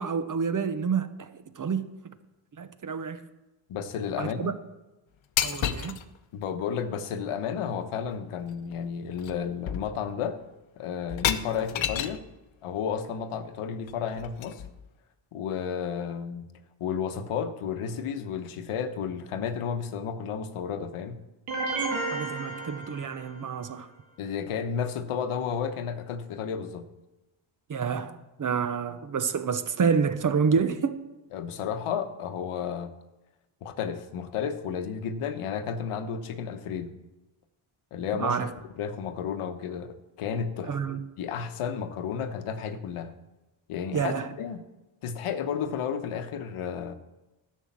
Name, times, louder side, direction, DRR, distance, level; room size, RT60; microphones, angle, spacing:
voice 1, 0.0-1.8 2.6-3.2 4.2-4.5 5.4-6.0 22.1-23.9 27.7-31.0 38.2-38.5 40.6-41.0 43.9-44.3, right 6 dB, 40° right, 0.8 m, -28 dB
voice 2, 3.7-4.5 6.3-10.4 10.8-12.2 12.6-14.6 15.3-16.5 16.8-21.2 24.2-26.9 31.3-32.9 33.6-36.9 37.9-40.7 41.2-43.1 43.7-44.6 45.0-46.9, left 7 dB, 85° left, 1.1 m, -32 dB
sound 1, 5.4-6.0 8.0-8.1 8.5-8.8 9.2-9.4 9.7-10.2 11.1-12.3 13.9-14.9, left 10 dB, 65° left, 0.9 m, -31 dB
sound 2, 21.5-23.6, right 3 dB, 80° right, 2.3 m, -32 dB
12.0 x 6.5 x 7.3 m
cardioid pair, 120°, 50 cm